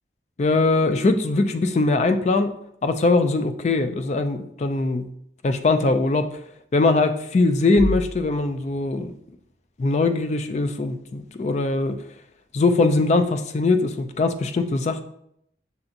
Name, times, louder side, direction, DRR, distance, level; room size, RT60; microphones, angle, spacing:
voice 1, 0.4-5.1 5.4-6.4 6.7-9.1 9.8-12.0 12.5-15.0, left 3 dB, 40° left, 8 dB, 0.3 m, -21 dB
sound 1, 7.8-8.7, equal, 25° left, 1.0 m, -29 dB
6.7 x 2.7 x 2.5 m, 0.72 s
head